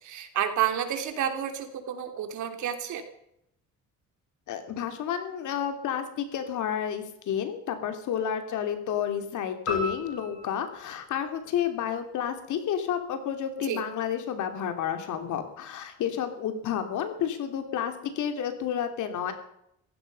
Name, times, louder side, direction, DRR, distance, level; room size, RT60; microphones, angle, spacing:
voice 1, 0.0-3.0 13.6-13.8, right 10 dB, 75° right, 7 dB, 2.8 m, -30 dB
voice 2, 4.5-19.3, left 9 dB, 80° left, 7 dB, 3.0 m, -30 dB
sound 1, 9.7-12.1, left 2 dB, 60° left, 7.1 m, -37 dB
17.0 x 15.5 x 5.4 m, 0.76 s
cardioid pair, 135°, 30 cm